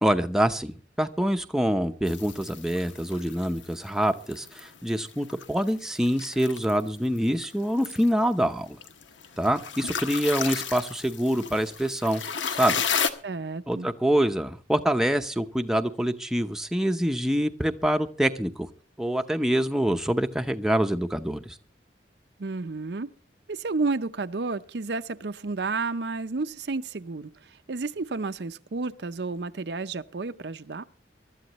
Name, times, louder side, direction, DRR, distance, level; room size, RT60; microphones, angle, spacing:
voice 1, 0.0-8.8 9.4-12.2 12.6-12.8 13.7-18.7 19.0-21.6, equal, 5° right, 0.7 m, -25 dB
sound 1, 2.1-13.1, left 7 dB, 90° left, 1.3 m, -34 dB
voice 2, 13.2-13.9 22.4-23.1 23.5-30.8, right 3 dB, 65° right, 0.6 m, -31 dB
24.0 x 12.5 x 3.0 m
head